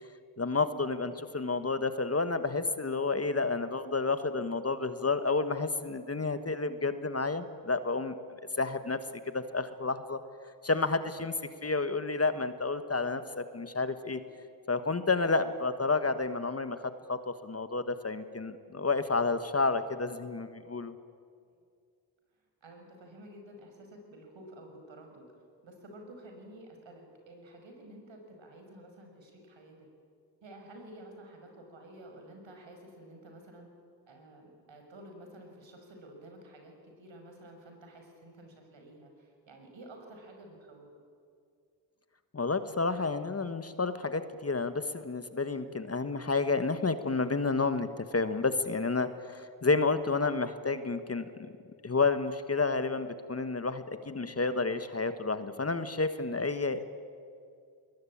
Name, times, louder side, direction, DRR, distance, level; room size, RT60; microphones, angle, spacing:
voice 1, 0.4-8.1 8.6-9.0 9.3-10.2 10.6-11.3 11.6-14.2 14.7-16.8 17.1-20.9 42.3-51.5 51.8-56.8, left 3 dB, 30° left, 11 dB, 1.5 m, -30 dB
voice 2, 22.6-25.3 25.6-29.9 30.4-33.7 34.1-40.9, right 1 dB, 65° right, 3 dB, 6.2 m, -51 dB
21.0 x 20.0 x 8.8 m, 2.3 s
supercardioid pair, 45°, 49 cm